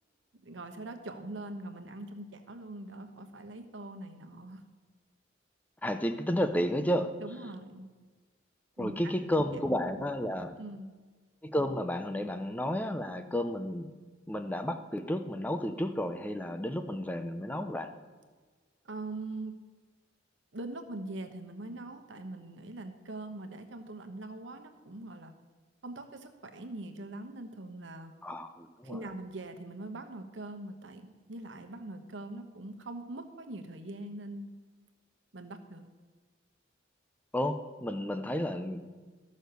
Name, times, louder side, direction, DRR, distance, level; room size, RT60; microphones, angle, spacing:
voice 1, 0.4-4.6 7.2-7.9 8.8-9.1 10.0-10.1 10.6-10.9 18.8-19.5 20.5-25.3 25.8-28.1 28.8-34.5 35.3-35.9, right 2 dB, 75° right, 6 dB, 1.1 m, -42 dB
voice 2, 5.8-7.1 8.8-10.6 11.4-13.9 14.3-17.9 28.2-29.0 37.3-38.8, equal, 10° left, 8 dB, 0.6 m, -32 dB
13.0 x 6.3 x 6.8 m, 1.4 s
head